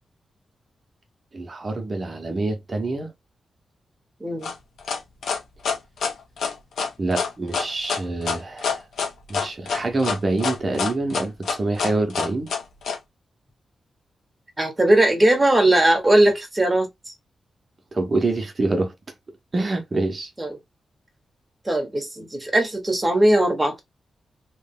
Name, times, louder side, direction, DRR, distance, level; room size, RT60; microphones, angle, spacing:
voice 1, 1.3-3.1 7.0-8.8 9.3-12.5 17.9-18.9 19.5-20.3, right 2 dB, 30° right, 1.1 m, -26 dB
voice 2, 4.2-4.5 14.6-17.1 20.4-20.6 21.6-23.8, right 1 dB, 10° right, 1.4 m, -19 dB
sound 1, 4.4-13.0, left 5 dB, 85° left, 1.2 m, -26 dB
3.3 x 3.3 x 3.7 m
wide cardioid pair, 165°, 0 cm